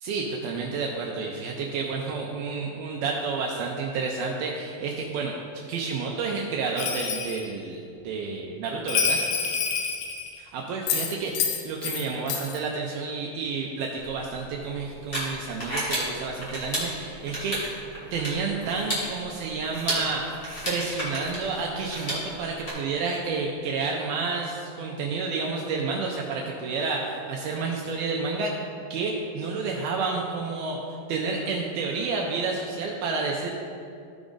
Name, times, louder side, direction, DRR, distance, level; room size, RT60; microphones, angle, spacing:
voice 1, 0.0-5.3 5.7-9.2 10.4-17.8 18.1-28.5 28.9-30.8 31.1-33.5, right 4 dB, 85° right, -1 dB, 2.2 m, -30 dB
Bell, 6.8-7.5 8.9-10.4 10.9-12.0 12.3-12.6, left 6 dB, 85° left, 2.9 m, -27 dB
sound 1, 14.0-22.7, equal, 30° left, 1.1 m, -33 dB
15.0 x 5.1 x 3.7 m, 2.5 s
omnidirectional pair, 5.0 m